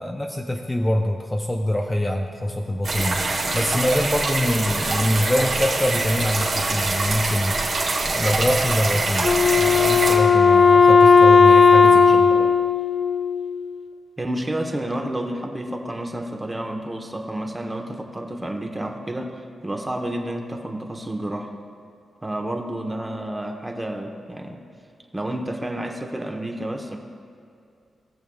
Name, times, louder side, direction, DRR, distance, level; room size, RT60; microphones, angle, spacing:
voice 1, 0.0-3.2 3.5-7.6 8.1-12.3, left 1 dB, 15° left, 1 dB, 0.6 m, -24 dB
sound 1, 2.8-10.2, right 3 dB, 65° right, 1.7 m, -24 dB
Wind instrument woodwind instrument, 9.2-13.7, left 5 dB, 45° left, 0.3 m, -15 dB
voice 2, 11.8-12.5 14.2-21.5 22.2-24.6 25.1-27.0, right 1 dB, 20° right, 3 dB, 1.1 m, -30 dB
19.5 x 7.0 x 2.4 m, 2.5 s
cardioid pair, 70°, 0 cm